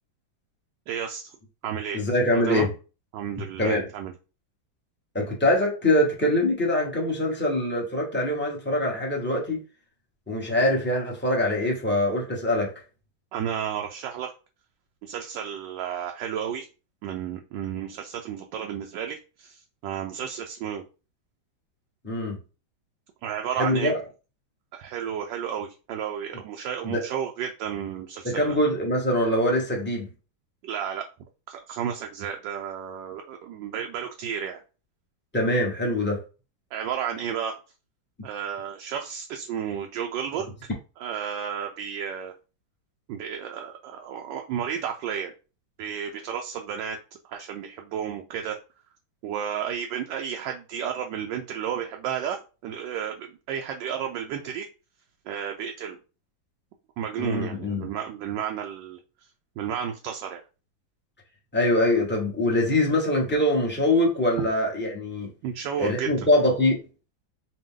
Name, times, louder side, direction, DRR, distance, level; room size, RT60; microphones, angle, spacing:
voice 1, 0.9-1.3 1.6-2.0 2.3-2.7 3.1-4.1 13.3-14.3 15.0-16.7 17.0-20.8 23.2-23.9 24.7-28.5 30.6-31.1 31.5-34.6 36.7-37.6 38.2-40.7 41.0-42.3 43.1-45.3 45.8-48.6 49.2-54.7 55.3-56.0 57.0-59.0 59.6-60.4 65.4-66.3, right 8 dB, 75° right, 1.2 m, -32 dB
voice 2, 1.9-2.7 3.6-3.9 5.1-9.6 10.3-12.7 22.0-22.4 23.6-24.0 26.8-27.0 28.2-30.1 35.3-36.2 57.2-57.9 61.5-65.3 65.8-66.8, left 1 dB, 10° left, 0.6 m, -23 dB
5.0 x 2.2 x 3.6 m
omnidirectional pair, 2.2 m